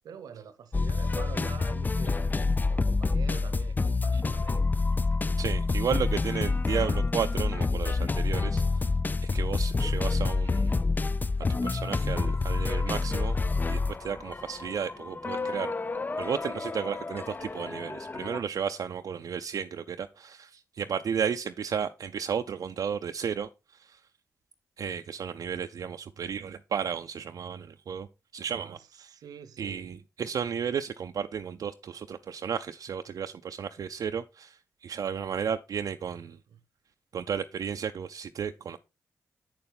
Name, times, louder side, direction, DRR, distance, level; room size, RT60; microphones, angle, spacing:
voice 1, 0.0-2.4 2.7-4.6 5.1-5.2 28.5-29.9 36.5-36.6, right 7 dB, 85° right, 0.9 m, -46 dB
sound 1, 0.7-18.4, left 3 dB, 30° left, 0.5 m, -28 dB
voice 2, 5.4-8.9 9.3-10.8 11.6-13.4 13.7-15.7 16.2-24.0 24.8-28.1 28.3-29.1 29.6-36.4 37.1-38.8, right 7 dB, 70° right, 0.5 m, -33 dB
7.8 x 6.9 x 3.9 m
cardioid pair, 60°, 6 cm